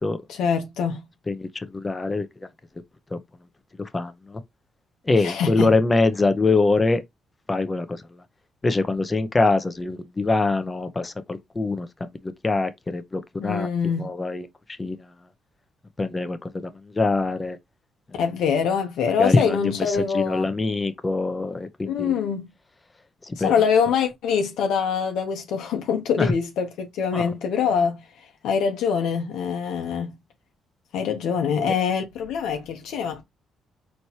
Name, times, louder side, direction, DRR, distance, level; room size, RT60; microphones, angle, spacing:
voice 1, 0.3-1.1 5.2-5.7 13.4-14.2 18.2-20.5 21.8-22.5 23.4-28.0 28.4-30.2 30.9-33.2, left 6 dB, 85° left, 1.0 m, -24 dB
voice 2, 1.3-2.3 3.1-3.2 3.8-4.4 5.1-7.0 7.5-8.0 8.6-11.9 12.2-13.7 14.0-14.4 14.8-15.0 16.0-16.4 17.0-17.6 19.2-19.6 20.1-22.1 23.3-23.5 26.2-26.3 27.1-27.2, left 3 dB, 25° left, 0.7 m, -23 dB
4.2 x 3.2 x 2.8 m
cardioid pair, 90°, 0 cm